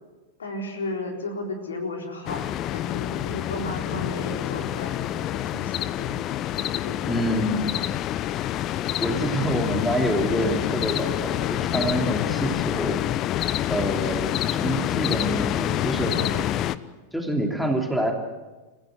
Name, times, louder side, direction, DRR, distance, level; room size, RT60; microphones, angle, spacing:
voice 1, 0.4-6.3 6.6-7.0 16.1-16.5, left 2 dB, 70° left, 2 dB, 4.2 m, -34 dB
sound 1, 2.3-16.8, left 12 dB, 35° left, 0.8 m, -27 dB
voice 2, 7.0-7.6 9.0-13.0 13.7-14.3 14.6-16.2 17.1-18.1, equal, ahead, 2 dB, 3.1 m, -26 dB
29.0 x 16.0 x 7.9 m, 1.2 s
figure-of-eight pair, 90°, 0 cm